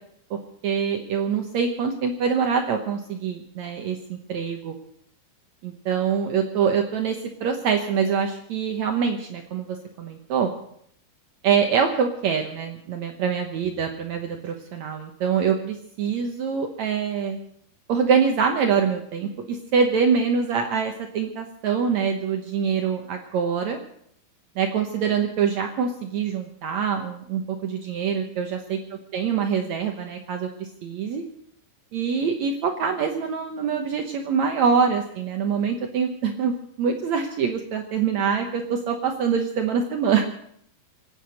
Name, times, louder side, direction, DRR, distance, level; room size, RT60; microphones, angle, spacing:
voice 1, 0.3-4.7 5.6-10.5 11.4-17.4 17.9-23.8 24.5-28.8 29.1-31.2 31.9-36.5 36.8-40.2, right 6 dB, 85° right, 4 dB, 1.5 m, -24 dB
26.0 x 8.7 x 6.4 m, 0.68 s
omnidirectional pair, 5.0 m